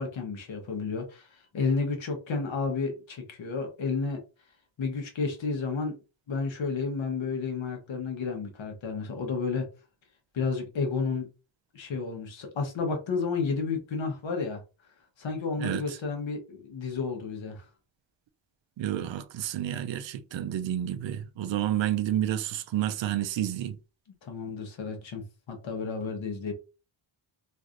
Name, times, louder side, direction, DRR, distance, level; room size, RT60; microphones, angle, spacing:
voice 1, 0.0-4.2 4.8-5.9 6.3-9.7 10.3-11.3 11.7-14.6 15.2-17.6 24.2-26.5, left 4 dB, 70° left, 1.1 m, -31 dB
voice 2, 18.8-23.8, right 11 dB, 70° right, 0.5 m, -30 dB
3.2 x 2.6 x 2.5 m
wide cardioid pair, 165°, 47 cm